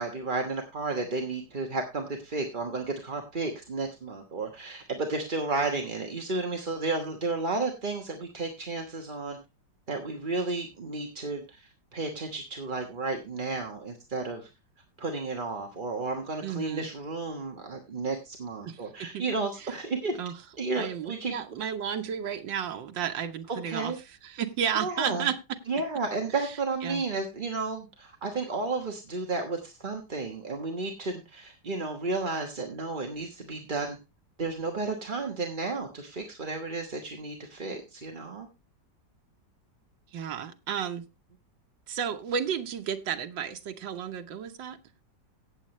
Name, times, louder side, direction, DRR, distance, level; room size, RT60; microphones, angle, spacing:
voice 1, 0.0-9.4 9.9-14.5 15.0-20.2 20.6-21.4 23.5-24.0 24.7-25.3 25.7-34.0 34.4-38.5, right 3 dB, 30° right, 3 dB, 1.3 m, -32 dB
voice 2, 16.4-16.9 18.6-19.2 19.6-19.7 20.2-20.3 20.8-23.9 24.2-25.4 26.4-26.5 26.8-27.0 40.1-41.0 41.9-44.8, right 8 dB, 90° right, 6 dB, 1.8 m, -32 dB
17.0 x 7.5 x 3.1 m, 0.25 s
omnidirectional pair, 1.9 m